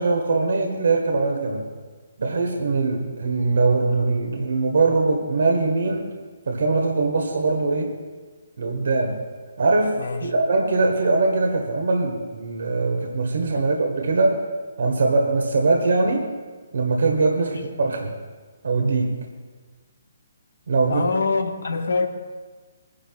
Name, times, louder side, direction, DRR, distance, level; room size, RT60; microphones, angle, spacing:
voice 1, 0.0-1.6 2.2-6.1 6.5-7.9 8.6-9.2 9.6-14.5 14.8-16.3 16.7-18.1 18.6-19.2 20.7-21.1, right 3 dB, 70° right, 2 dB, 1.5 m, -22 dB
voice 2, 10.0-10.3 13.5-13.6 17.5-17.6 20.9-22.1, left 4 dB, 75° left, 6 dB, 1.1 m, -25 dB
24.0 x 10.5 x 2.4 m, 1.4 s
figure-of-eight pair, 140°, 0 cm